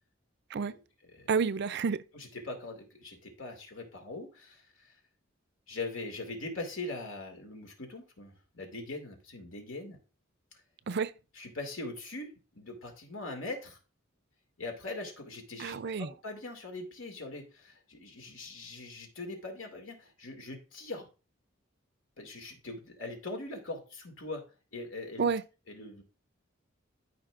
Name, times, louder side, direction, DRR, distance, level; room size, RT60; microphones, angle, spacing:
voice 1, 1.3-2.0 10.9-11.1 15.6-16.1 25.2-25.4, right 5 dB, 60° right, 0.5 m, -29 dB
voice 2, 2.1-4.9 5.7-10.0 11.3-13.8 14.6-21.1 22.2-24.4 24.7-25.3 25.7-26.0, left 2 dB, 80° left, 2.2 m, -41 dB
13.0 x 5.3 x 2.5 m
head